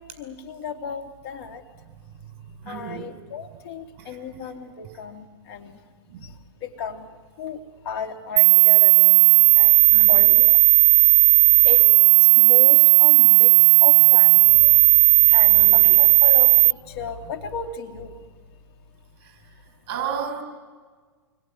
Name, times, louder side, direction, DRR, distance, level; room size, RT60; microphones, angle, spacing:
voice 1, 0.0-1.6 2.7-5.8 6.6-7.1 7.4-9.3 9.5-10.5 11.0-11.1 11.6-11.9 12.2-13.5 13.8-14.8 15.3-18.2, left 6 dB, 55° left, 4 dB, 2.7 m, -34 dB
voice 2, 2.6-3.1 4.0-4.5 4.9-5.0 6.1-6.3 9.9-10.3 15.2-15.9 19.2-19.6 19.9-20.4, right 7 dB, 35° right, 5 dB, 6.5 m, -34 dB
sound 1, 8.4-16.7, right 25 dB, 60° right, 0.8 m, -14 dB
26.5 x 22.0 x 10.0 m, 1.5 s
hypercardioid pair, 130°, 15 cm